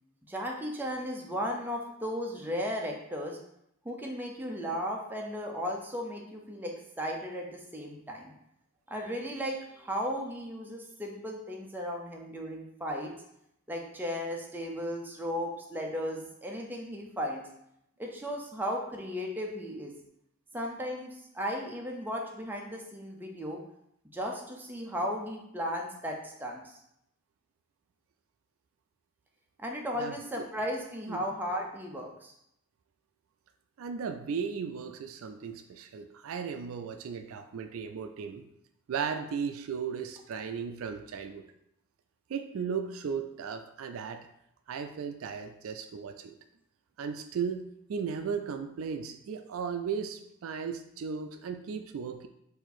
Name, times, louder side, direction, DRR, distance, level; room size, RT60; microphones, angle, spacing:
voice 1, 0.3-3.4 3.8-8.3 8.9-13.1 13.7-17.4 18.0-19.9 20.5-23.6 24.1-26.8 29.6-32.3, equal, 10° right, 0 dB, 0.5 m, -35 dB
voice 2, 33.8-38.5 38.9-41.4 42.3-44.3 44.7-46.3 47.0-52.3, right 6 dB, 70° right, 8 dB, 0.3 m, -36 dB
4.5 x 2.6 x 4.1 m, 0.77 s
head